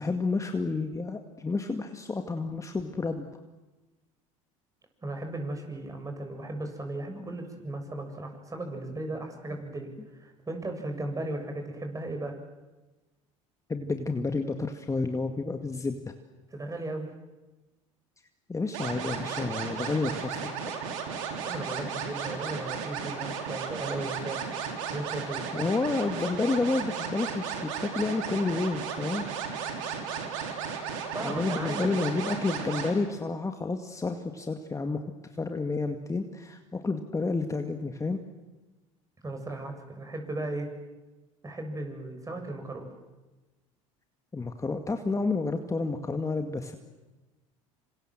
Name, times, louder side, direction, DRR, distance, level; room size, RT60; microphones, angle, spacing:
voice 1, 0.0-3.2 13.7-16.1 18.5-20.5 25.5-29.3 31.2-35.0 35.4-38.2 44.3-46.8, left 3 dB, 20° left, 6 dB, 2.0 m, -30 dB
voice 2, 5.0-9.9 10.2-12.4 16.5-17.1 21.4-24.4 24.9-25.5 31.1-31.9 39.2-40.7 41.4-42.9, right 2 dB, 20° right, 4 dB, 7.1 m, -36 dB
sound 1, 18.7-32.9, right 6 dB, 75° right, 4.3 m, -35 dB
27.0 x 26.5 x 7.7 m, 1.1 s
hypercardioid pair, 75°, 17 cm